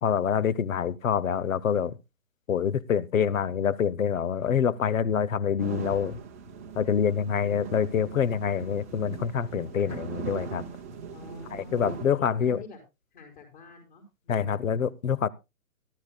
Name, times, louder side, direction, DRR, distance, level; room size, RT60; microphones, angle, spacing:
voice 1, 0.0-2.0 2.5-6.2 6.7-10.6 11.5-12.6 14.3-15.3, left 7 dB, 60° left, 0.8 m, -26 dB
sound 1, 5.6-12.1, right 6 dB, 10° right, 0.7 m, -40 dB
voice 2, 11.1-12.8 13.1-14.8, left 3 dB, 35° left, 5.1 m, -49 dB
18.5 x 12.5 x 2.2 m
hypercardioid pair, 155°, 44 cm